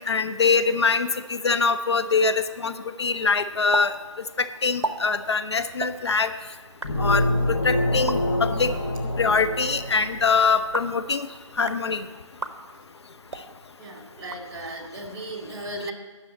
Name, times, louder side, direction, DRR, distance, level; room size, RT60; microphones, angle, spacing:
voice 1, 0.0-2.7 3.0-3.9 4.4-6.3 7.0-8.7 9.2-11.3 11.6-12.1, left 4 dB, 60° left, 10 dB, 0.6 m, -23 dB
sound 1, 3.7-3.9 4.1-4.2 4.6-4.9 5.7-5.9 6.6-6.9 7.9-8.2 9.2-9.5 10.5-11.0 11.5-11.8 12.3-12.5 13.2-13.5 14.2-14.9, right 3 dB, 60° right, 0.9 m, -34 dB
sound 2, 6.8-10.6, left 1 dB, 40° left, 1.0 m, -26 dB
voice 2, 13.8-15.9, right 1 dB, 45° right, 2 dB, 2.3 m, -36 dB
9.8 x 6.3 x 7.3 m, 1.4 s
figure-of-eight pair, 150°, 16 cm